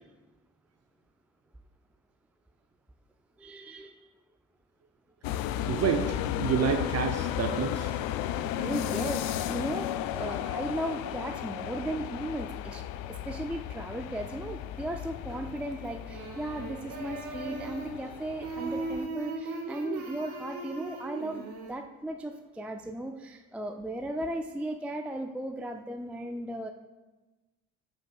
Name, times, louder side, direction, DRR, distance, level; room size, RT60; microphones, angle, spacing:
voice 1, 3.4-4.0 8.3-12.8 13.1-26.7, right 1 dB, 5° right, 5 dB, 0.4 m, -36 dB
sound 1, 5.2-19.1, left 11 dB, 60° left, 0.5 m, -34 dB
voice 2, 5.7-7.9, right 7 dB, 40° right, 5 dB, 0.6 m, -29 dB
sound 2, 15.3-15.7 16.0-18.1 18.4-21.7, right 3 dB, 55° right, 1.6 m, -38 dB
14.0 x 5.1 x 2.3 m, 1.2 s
figure-of-eight pair, 45°, 39 cm